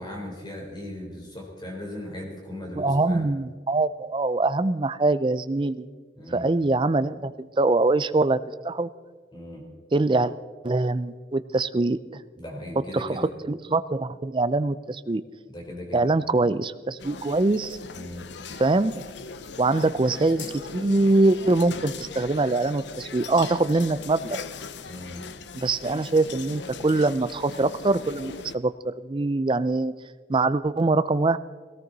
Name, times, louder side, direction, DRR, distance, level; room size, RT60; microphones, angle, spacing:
voice 1, 0.0-3.2 6.2-6.5 9.3-9.6 12.4-13.3 15.5-16.1 17.9-18.3 24.9-25.2, left 1 dB, 25° left, -1 dB, 3.6 m, -38 dB
voice 2, 2.8-5.9 6.3-8.4 8.6-8.9 9.9-10.3 10.6-12.2 12.9-15.2 15.9-17.8 18.6-19.1 19.6-20.5 20.7-24.4 25.5-29.9 30.3-31.4, right 2 dB, 25° right, 13 dB, 0.4 m, -23 dB
sound 1, 17.0-28.6, left 5 dB, 65° left, 0.7 m, -39 dB
19.0 x 17.5 x 4.0 m, 1.5 s
head